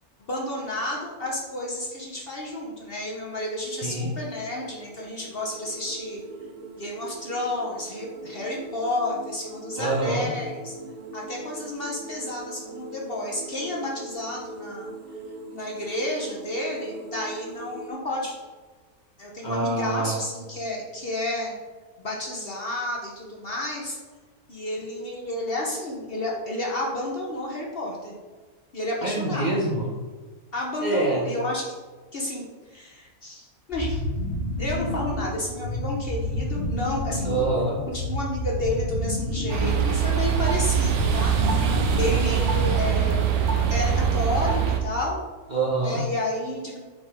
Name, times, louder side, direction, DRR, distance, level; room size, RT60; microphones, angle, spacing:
voice 1, 0.2-6.2 6.8-10.7 11.1-14.9 15.5-18.4 19.2-21.5 22.0-24.0 24.5-28.1 28.7-29.5 30.5-31.8 32.1-34.0 34.6-37.4 37.9-41.7 42.0-43.3 43.7-45.2 45.8-46.8, left 1 dB, 45° left, -2 dB, 1.0 m, -31 dB
sound 1, 3.3-17.9, right 2 dB, 55° right, 0.4 m, -41 dB
voice 2, 9.8-10.3 19.4-20.2 29.0-29.9 30.8-31.2 37.2-37.8 45.5-46.0, right 2 dB, 35° right, -4 dB, 0.9 m, -25 dB
sound 2, 33.7-42.9, left 1 dB, 25° left, 1.9 m, -30 dB
sound 3, 39.5-44.8, right 8 dB, 80° right, 1.2 m, -23 dB
5.1 x 4.0 x 4.8 m, 1.4 s
omnidirectional pair, 1.6 m